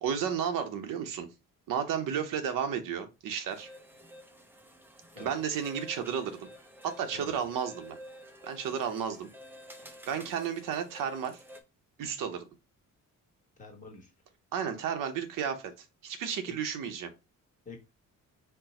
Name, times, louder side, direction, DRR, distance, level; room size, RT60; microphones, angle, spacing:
voice 1, 0.0-1.3 1.7-3.7 5.2-6.5 6.8-8.0 8.4-9.3 9.9-11.4 12.0-12.4 14.5-15.7 16.0-17.1, right 7 dB, 80° right, 0.8 m, -33 dB
sound 1, 3.5-11.6, equal, 5° right, 0.4 m, -51 dB
voice 2, 7.1-7.4 13.6-14.1 16.4-16.8 17.6-17.8, left 3 dB, 25° left, 1.0 m, -47 dB
4.4 x 2.0 x 4.1 m
cardioid pair, 160°, 32 cm